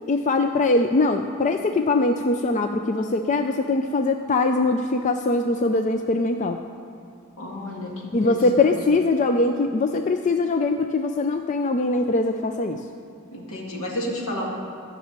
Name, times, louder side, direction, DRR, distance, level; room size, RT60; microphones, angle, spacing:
voice 1, 0.1-6.6 8.1-12.8, left 2 dB, 35° left, 5 dB, 0.4 m, -22 dB
voice 2, 7.4-8.7 13.3-14.5, left 1 dB, 70° left, -2 dB, 2.1 m, -31 dB
13.5 x 6.1 x 8.8 m, 2.5 s
head